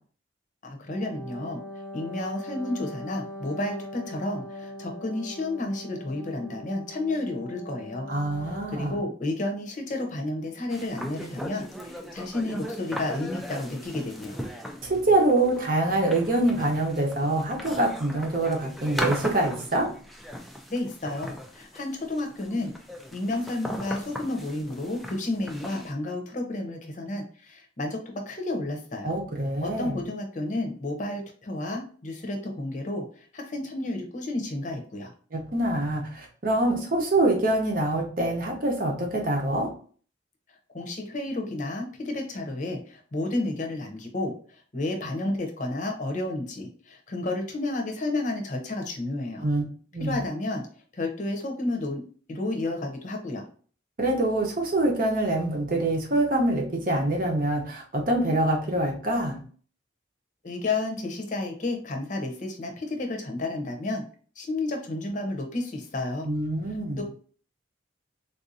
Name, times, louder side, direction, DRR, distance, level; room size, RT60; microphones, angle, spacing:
voice 1, 0.6-1.6 1.9-8.1 8.5-14.4 20.7-22.7 23.1-29.1 29.6-35.1 40.7-49.5 50.0-50.7 50.9-52.0 52.3-53.4 60.4-64.0 64.4-66.3 67.0-67.1, left 2 dB, 40° left, 3 dB, 0.7 m, -31 dB
Wind instrument woodwind instrument, 0.8-9.0, equal, 80° right, 1.2 m, -41 dB
voice 2, 8.1-8.9 14.8-19.9 29.0-30.0 35.3-39.7 49.4-49.6 49.9-50.2 54.0-59.4 66.2-67.0, right 1 dB, 45° right, 1 dB, 0.9 m, -25 dB
sound 1, 10.7-25.9, equal, ahead, 0.3 m, -38 dB
3.6 x 2.6 x 2.6 m, 0.44 s
head